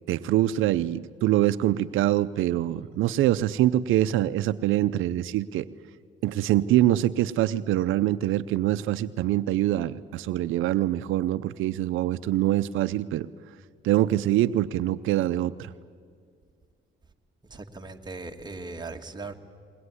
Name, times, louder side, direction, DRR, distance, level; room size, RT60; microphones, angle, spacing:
voice 1, 0.1-5.7 6.2-13.3 13.8-15.7, right 14 dB, 85° right, 13 dB, 0.6 m, -24 dB
voice 2, 17.5-19.3, right 3 dB, 20° right, 3 dB, 1.8 m, -38 dB
22.0 x 19.5 x 9.7 m, 2.1 s
cardioid pair, 90°, 20 cm